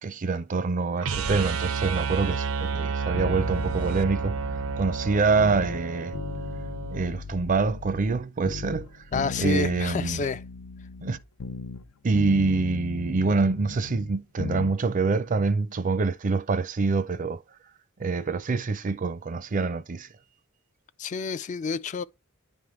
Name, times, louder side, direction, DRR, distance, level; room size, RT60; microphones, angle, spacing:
voice 1, 0.0-6.2 6.9-8.9 9.4-10.2 11.0-11.2 12.0-17.4 18.0-20.1, right 4 dB, 40° right, 0.5 m, -26 dB
sound 1, 1.0-7.1, right 5 dB, 90° right, 0.7 m, -30 dB
sound 2, 3.1-5.8 6.1-8.2 8.4-11.9 12.1-14.7 15.0-15.1, left 4 dB, 85° left, 0.6 m, -37 dB
voice 2, 9.1-10.4 21.0-22.0, left 4 dB, 35° left, 0.3 m, -29 dB
10.0 x 3.6 x 3.1 m
head